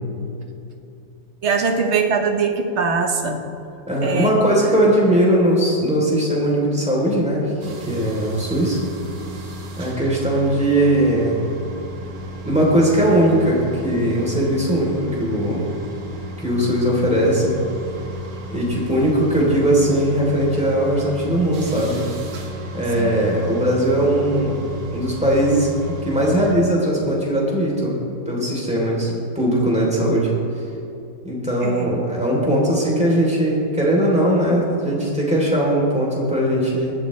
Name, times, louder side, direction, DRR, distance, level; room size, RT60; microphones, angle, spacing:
voice 1, 1.4-3.4 4.0-4.3 23.0-23.2 31.6-31.9, right 5 dB, 45° right, 4 dB, 1.3 m, -21 dB
voice 2, 3.9-8.8 9.8-11.4 12.4-15.7 16.4-17.6 18.5-22.1 22.7-24.6 24.9-25.7 26.0-27.9 28.2-30.3 31.2-36.9, right 1 dB, 5° right, -4 dB, 3.2 m, -19 dB
sound 1, 7.6-26.5, right 1 dB, 75° right, 1.9 m, -35 dB
19.5 x 12.5 x 3.2 m, 2.8 s
omnidirectional pair, 1.9 m